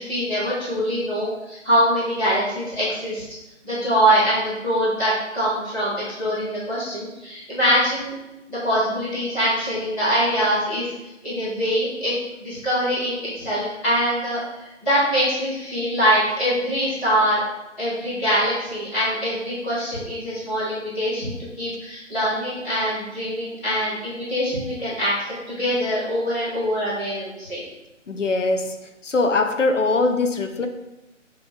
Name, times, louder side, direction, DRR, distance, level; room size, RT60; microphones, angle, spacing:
voice 1, 0.0-3.2 3.6-8.1 8.5-10.9 11.2-12.1 12.4-17.4 17.8-25.1 25.5-27.6, equal, 5° left, -18 dB, 1.4 m, -23 dB
voice 2, 28.1-28.8 29.0-30.7, left 3 dB, 75° left, 5 dB, 0.9 m, -21 dB
6.9 x 3.2 x 4.9 m, 0.98 s
hypercardioid pair, 175°, 37 cm